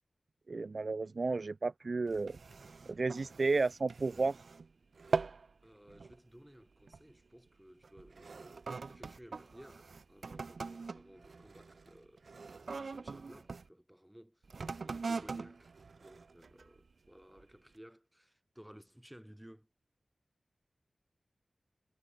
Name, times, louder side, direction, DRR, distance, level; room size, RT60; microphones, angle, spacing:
voice 1, 0.5-2.4 2.9-4.4, right 3 dB, 55° right, 0.3 m, -32 dB
sound 1, 2.1-4.7 5.0-5.5 5.9-6.2 6.9-7.1 7.8-13.7 14.4-16.8 17.4-17.5, right 4 dB, 70° right, 1.3 m, -42 dB
voice 2, 5.6-12.2 12.8-14.5 14.8-19.7, equal, 5° right, 5.6 m, -57 dB
wide cardioid pair, 85°, 0 cm